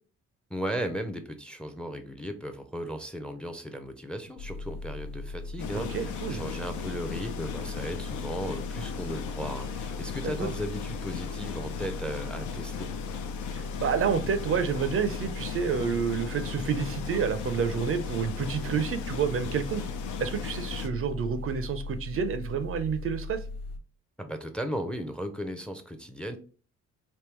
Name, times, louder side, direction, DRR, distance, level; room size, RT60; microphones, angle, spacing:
voice 1, 0.5-12.9 24.2-26.4, equal, 5° left, 7 dB, 0.5 m, -36 dB
sound 1, 4.4-23.8, left 2 dB, 50° left, 0.9 m, -38 dB
sound 2, 5.6-20.9, left 9 dB, 80° left, 0.6 m, -38 dB
voice 2, 5.7-6.4 10.2-10.5 13.5-19.8 20.2-23.4, right 6 dB, 45° right, 10 dB, 0.5 m, -29 dB
3.5 x 2.7 x 3.0 m, 0.38 s
cardioid pair, 90°, 30 cm